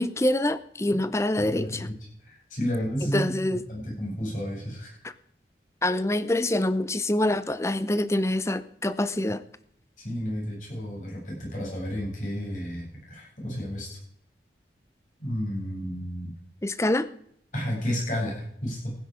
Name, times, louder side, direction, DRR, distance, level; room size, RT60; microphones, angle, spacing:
voice 1, 0.0-1.9 3.0-3.6 5.8-9.4 16.6-17.1, left 1 dB, 15° left, 14 dB, 0.6 m, -25 dB
voice 2, 1.4-1.9 2.2-5.0 10.0-14.0 15.2-16.3 17.5-18.9, equal, 45° left, -3 dB, 7.6 m, -32 dB
16.0 x 10.0 x 5.0 m, 0.67 s
head